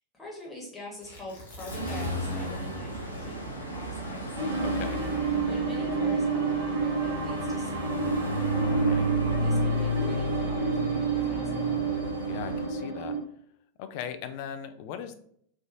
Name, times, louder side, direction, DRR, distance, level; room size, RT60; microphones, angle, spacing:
voice 1, 0.1-4.2 5.4-8.2 9.4-11.8, left 1 dB, 10° left, -4 dB, 1.2 m, -45 dB
Tearing, 1.0-2.4 2.7-2.8 3.3-5.7 6.4-6.9, left 1 dB, 65° left, 0.9 m, -45 dB
sound 1, 1.7-12.7, right 1 dB, 85° left, 0.6 m, -33 dB
sound 2, 4.4-13.2, right 4 dB, 50° right, 1.0 m, -29 dB
voice 2, 4.6-5.0 8.6-9.1 11.6-11.9 12.3-13.2 13.8-15.1, left 8 dB, 45° left, 9 dB, 0.3 m, -39 dB
3.2 x 2.5 x 2.5 m, 0.66 s
figure-of-eight pair, 90°, 0 cm